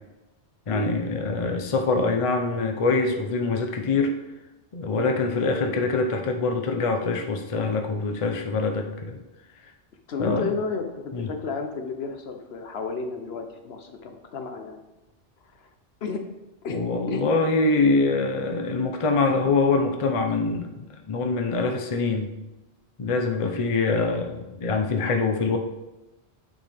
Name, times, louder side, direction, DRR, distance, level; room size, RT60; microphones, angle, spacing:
voice 1, 0.7-4.2 4.7-9.1 10.2-10.4 11.1-11.3 16.7-22.3 23.0-25.6, left 3 dB, 35° left, 4 dB, 0.6 m, -24 dB
voice 2, 10.1-14.8 15.5-15.7 16.0-16.2 16.6-16.8 17.1-17.3, left 4 dB, 65° left, 5 dB, 0.9 m, -32 dB
8.8 x 4.2 x 3.4 m, 1.0 s
omnidirectional pair, 1.2 m